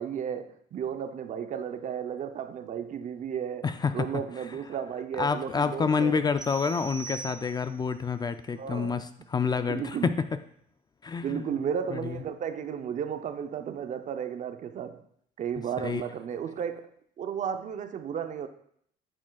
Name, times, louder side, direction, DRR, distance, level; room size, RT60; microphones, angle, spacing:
voice 1, 0.0-6.2 8.6-9.0 9.7-10.2 11.2-15.0 15.4-16.9 17.2-18.5, right 8 dB, 45° right, 0.6 m, -34 dB
voice 2, 3.6-4.1 5.2-10.1 11.0-11.5 11.9-12.2 15.8-16.0, left 5 dB, 25° left, 0.4 m, -28 dB
sound 1, 6.4-7.9, right 6 dB, 5° right, 1.7 m, -41 dB
10.5 x 6.1 x 2.3 m
cardioid pair, 110°, 17 cm